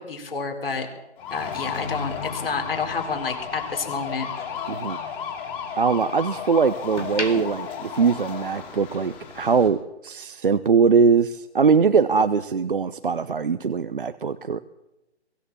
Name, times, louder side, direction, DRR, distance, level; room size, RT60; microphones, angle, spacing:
voice 1, 0.1-0.9 1.3-4.3, left 4 dB, 55° left, 3 dB, 4.4 m, -29 dB
sound 1, 1.2-9.7, left 6 dB, 15° left, 3.0 m, -34 dB
sound 2, 2.1-4.5 4.9-6.3 6.7-8.9 9.2-9.4, left 1 dB, 85° left, 3.9 m, -37 dB
voice 2, 4.7-5.0 5.8-14.6, right 5 dB, 50° right, 11 dB, 0.9 m, -21 dB
23.0 x 15.5 x 7.2 m, 0.96 s
figure-of-eight pair, 140°, 34 cm